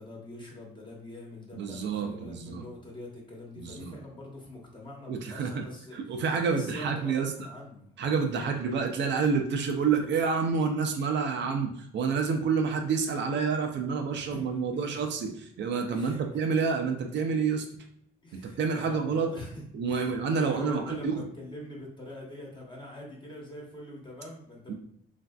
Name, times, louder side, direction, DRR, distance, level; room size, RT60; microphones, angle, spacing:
voice 1, 0.0-6.0 6.5-8.4 14.1-15.0 15.9-16.4 18.2-24.7, left 1 dB, 25° left, -2 dB, 1.1 m, -44 dB
voice 2, 1.5-2.6 3.6-4.0 5.1-5.6 5.9-7.3 8.0-17.7 18.4-19.3 19.7-21.2 24.7-24.8, right 5 dB, 65° right, 4 dB, 0.5 m, -28 dB
3.2 x 2.5 x 2.3 m, 0.72 s
cardioid pair, 90°, 20 cm